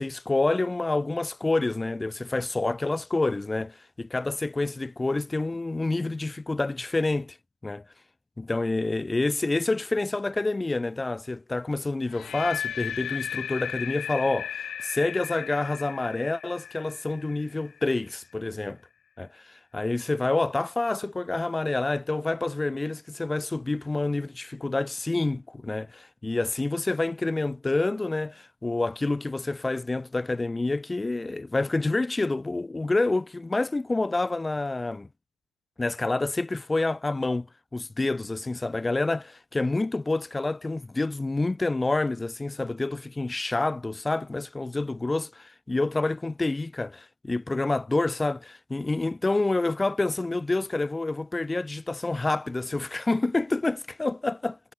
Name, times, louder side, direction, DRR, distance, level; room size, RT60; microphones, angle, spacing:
voice 1, 0.0-7.4 7.6-7.8 8.4-18.8 19.2-35.1 35.8-37.5 37.7-54.5, left 2 dB, 10° left, 0.6 m, -28 dB
sound 1, 12.1-18.1, left 9 dB, 35° left, 1.9 m, -36 dB
cardioid pair, 135°, 0 cm